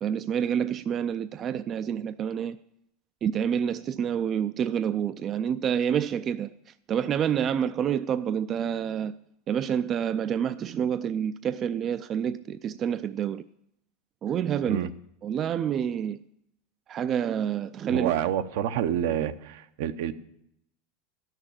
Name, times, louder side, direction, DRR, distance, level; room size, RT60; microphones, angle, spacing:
voice 1, 0.0-2.6 3.2-6.5 6.9-9.1 9.5-13.4 14.2-14.9 15.2-16.2 16.9-18.1, right 8 dB, 35° right, 0.4 m, -28 dB
voice 2, 17.9-20.1, right 10 dB, 70° right, 0.7 m, -28 dB
12.5 x 6.5 x 8.9 m
supercardioid pair, 125°, 0 cm